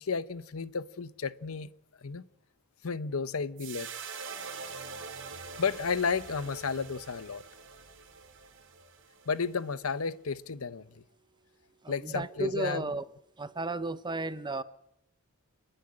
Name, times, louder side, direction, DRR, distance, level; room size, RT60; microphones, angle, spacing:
voice 1, 0.0-1.7 2.0-2.2 2.8-3.9 5.6-7.4 9.3-10.9 11.9-13.0, left 5 dB, 75° left, 0.8 m, -32 dB
sound 1, 3.6-10.0, right 5 dB, 60° right, 2.5 m, -44 dB
voice 2, 11.8-13.0 13.4-14.6, right 2 dB, 20° right, 0.8 m, -33 dB
29.5 x 10.0 x 9.8 m
head